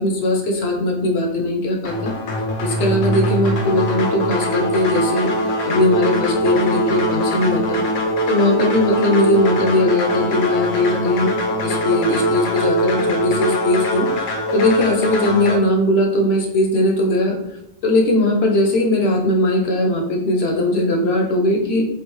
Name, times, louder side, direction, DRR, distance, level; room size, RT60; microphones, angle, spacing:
voice 1, 0.0-5.3 5.6-7.8 8.3-11.3 11.6-17.4 17.8-21.8, left 1 dB, 60° left, 3 dB, 0.9 m, -19 dB
sound 1, 1.8-15.6, equal, 90° left, 1.1 m, -22 dB
4.6 x 2.8 x 3.1 m, 0.82 s
omnidirectional pair, 1.2 m